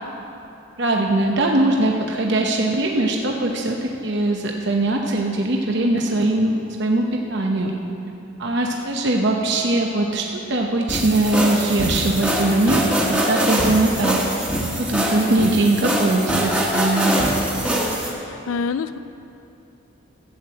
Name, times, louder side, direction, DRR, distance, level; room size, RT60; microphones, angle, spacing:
voice 1, 0.8-6.5 6.8-7.7 8.4-14.2 14.8-17.2, right 2 dB, 55° right, 1 dB, 0.8 m, -21 dB
sound 1, 10.9-18.1, equal, 5° right, 1.5 m, -23 dB
voice 2, 17.8-19.0, left 5 dB, 85° left, 13 dB, 0.4 m, -28 dB
13.0 x 8.1 x 7.6 m, 2.8 s
head